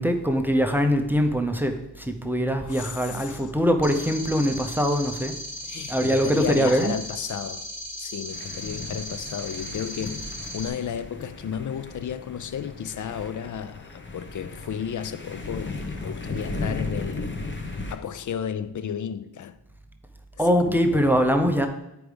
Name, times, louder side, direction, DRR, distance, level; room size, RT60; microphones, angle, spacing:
voice 1, 0.0-5.3 5.9-6.9 20.4-21.7, equal, 5° right, 0.7 m, -22 dB
voice 2, 2.6-3.5 5.7-7.7 8.0-17.3 17.9-19.6 20.6-21.1, left 8 dB, 45° left, 0.5 m, -33 dB
sound 1, 3.8-10.7, equal, 80° left, 2.2 m, -37 dB
sound 2, 8.3-18.0, left 3 dB, 25° left, 0.9 m, -36 dB
9.9 x 4.8 x 5.1 m
wide cardioid pair, 145°, 42 cm